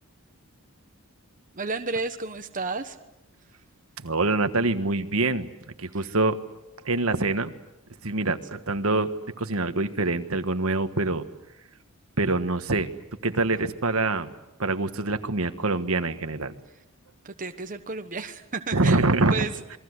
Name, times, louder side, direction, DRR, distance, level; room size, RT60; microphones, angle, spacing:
voice 1, 1.6-3.0 13.5-13.6 17.2-19.0 19.3-19.8, right 3 dB, 35° right, 6 dB, 1.2 m, -32 dB
voice 2, 4.0-5.5 5.8-6.4 6.8-7.5 8.0-9.1 9.4-11.2 12.2-12.9 13.2-14.3 14.6-16.5 18.7-19.5, right 2 dB, 70° right, 9 dB, 1.5 m, -25 dB
28.5 x 22.0 x 8.1 m, 0.92 s
head